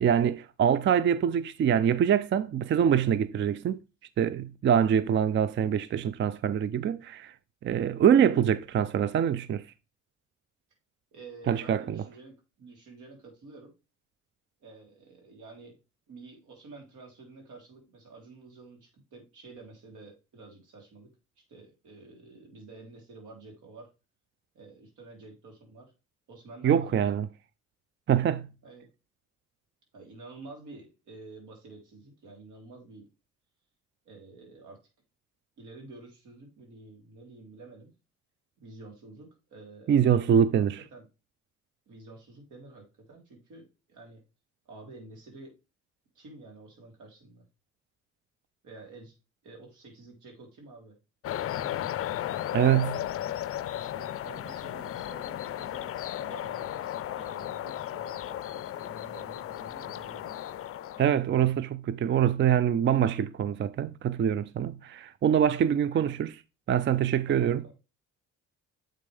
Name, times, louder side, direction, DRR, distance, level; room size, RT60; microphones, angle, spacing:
voice 1, 0.0-3.8 4.2-7.3 7.6-9.7 11.5-12.0 26.6-27.3 28.1-28.5 39.9-40.8 52.5-52.9 61.0-66.3 66.7-67.7, right 9 dB, 40° right, 0.4 m, -24 dB
voice 2, 11.1-13.7 14.6-15.8 16.1-21.1 21.5-23.9 24.5-25.9 26.3-27.2 28.6-28.9 29.9-33.0 34.0-34.8 35.6-37.9 38.6-40.4 40.7-41.1 41.9-44.2 44.6-45.5 46.1-47.4 48.6-49.2 49.4-50.9 51.4-51.9 52.5-60.5 65.9-66.2 67.3-67.7, right 3 dB, 80° right, 3.3 m, -49 dB
sound 1, 51.2-61.1, left 12 dB, 50° left, 0.4 m, -35 dB
7.5 x 5.2 x 3.3 m
cardioid pair, 90°, 30 cm